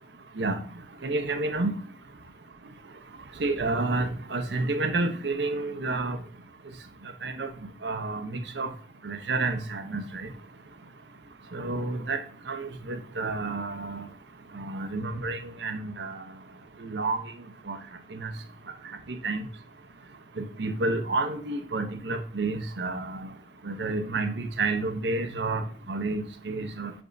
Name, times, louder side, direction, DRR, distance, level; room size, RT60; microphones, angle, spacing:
voice 1, 1.0-1.7 3.4-6.2 7.2-7.5 7.8-8.7 9.0-10.3 11.5-12.2 12.5-14.0 14.5-16.2 16.8-17.2 17.7-17.8 18.1-18.3 19.2-19.4 20.4-23.3 23.6-26.9, right 3 dB, 75° right, 7 dB, 0.8 m, -30 dB
10.0 x 3.5 x 2.6 m, 0.43 s
head